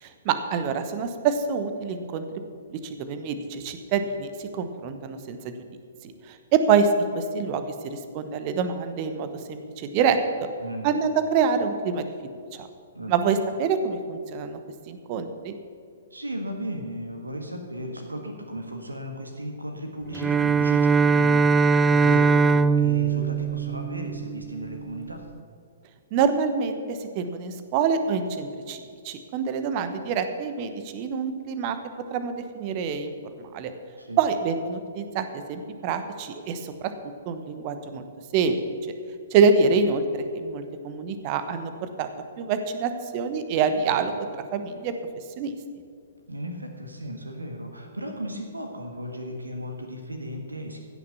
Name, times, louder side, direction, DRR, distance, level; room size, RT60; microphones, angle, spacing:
voice 1, 0.0-2.2 2.7-5.5 6.3-10.5 10.8-12.1 12.6-12.7 13.1-14.6 14.9-15.5 26.1-31.8 32.1-33.1 33.4-33.7 34.2-36.9 37.2-38.0 38.3-38.6 39.3-41.7 42.0-42.1 42.4-44.1 44.5-44.9 45.4-45.5, right 5 dB, 35° right, 9 dB, 1.1 m, -26 dB
voice 2, 16.1-25.3 34.0-34.2 46.3-50.8, equal, 80° right, 3 dB, 1.6 m, -35 dB
Bowed string instrument, 20.1-24.5, right 5 dB, 10° right, 0.4 m, -21 dB
15.5 x 6.8 x 7.0 m, 2.3 s
figure-of-eight pair, 120°, 0 cm